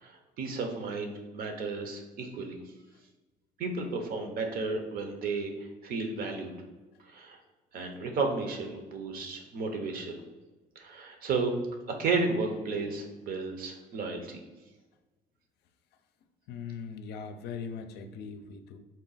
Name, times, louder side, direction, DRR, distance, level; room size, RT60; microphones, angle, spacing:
voice 1, 0.0-2.6 3.6-5.5 5.8-6.5 7.1-7.4 7.7-10.2 10.8-11.5 12.0-14.3, right 3 dB, 60° right, 4 dB, 0.7 m, -33 dB
voice 2, 16.5-18.8, left 6 dB, 75° left, 7 dB, 0.5 m, -40 dB
3.8 x 2.2 x 4.0 m, 1.2 s
cardioid pair, 110°, 17 cm